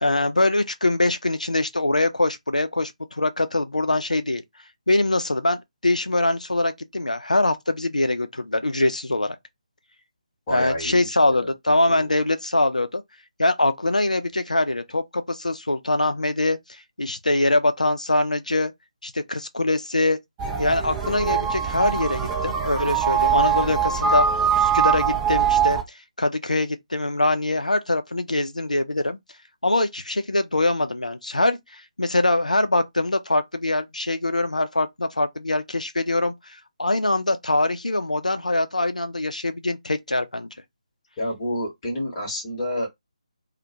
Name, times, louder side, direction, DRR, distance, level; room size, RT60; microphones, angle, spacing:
voice 1, 0.0-4.4 4.9-9.4 10.5-13.0 13.4-16.6 17.0-18.7 19.0-20.2 20.6-25.8 26.2-29.2 29.6-36.3 36.8-40.5, left 2 dB, 75° left, 0.4 m, -23 dB
voice 2, 10.5-11.5 11.9-12.1 41.2-42.9, left 1 dB, 20° left, 0.9 m, -29 dB
sound 1, 20.4-25.8, right 7 dB, 15° right, 0.4 m, -22 dB
2.1 x 2.1 x 2.7 m
figure-of-eight pair, 150°, 4 cm